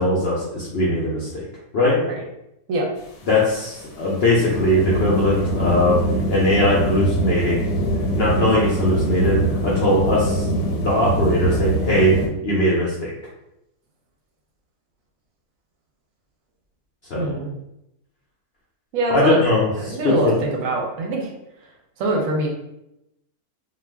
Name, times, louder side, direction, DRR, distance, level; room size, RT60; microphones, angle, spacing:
voice 1, 0.0-1.4 1.7-2.0 3.3-6.0 6.3-7.6 8.1-10.5 10.8-12.1 12.4-13.1 17.1-17.2 19.1-20.3, left 1 dB, 65° left, -5 dB, 0.6 m, -20 dB
sound 1, 3.0-12.3, right 1 dB, 80° left, 1.1 m, -23 dB
voice 2, 17.1-17.5 18.9-19.4 19.8-21.3 22.0-22.5, right 2 dB, 70° right, 0 dB, 0.9 m, -23 dB
2.3 x 2.3 x 3.3 m, 0.86 s
omnidirectional pair, 1.6 m